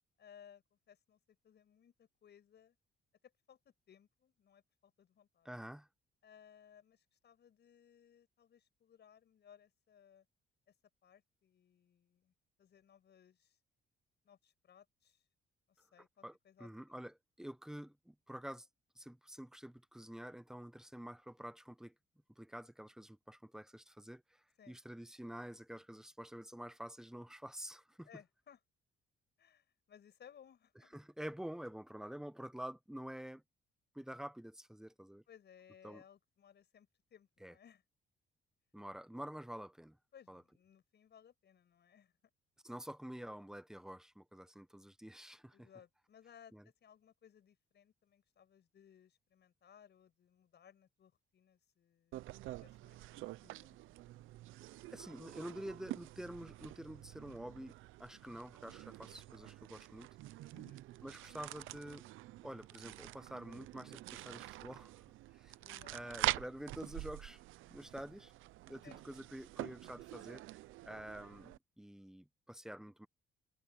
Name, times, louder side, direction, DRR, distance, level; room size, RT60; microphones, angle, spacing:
voice 1, 0.2-2.8 3.2-5.5 6.2-10.3 10.7-10.8 11.0-13.6 14.2-15.2 15.7-17.0 24.6-24.8 28.0-28.6 29.4-30.9 35.3-37.8 40.1-42.1 45.5-52.2 52.5-54.0 60.5-60.8 65.6-66.4 67.7-67.8 68.8-69.0, left 8 dB, 60° left, 7.2 m, -63 dB
voice 2, 5.4-5.9 16.2-18.7 19.0-21.9 22.4-24.4 24.7-28.1 30.9-33.4 33.9-35.2 35.8-36.0 37.4-37.5 38.7-40.0 40.3-40.4 42.6-45.7 46.5-46.6 54.9-60.1 61.0-62.1 62.4-64.9 65.3-65.5 65.9-67.4 67.7-68.3 68.7-70.4 70.8-73.1, equal, 5° right, 1.1 m, -48 dB
sound 1, 52.1-71.6, right 17 dB, 90° right, 0.6 m, -46 dB
cardioid pair, 90°, 20 cm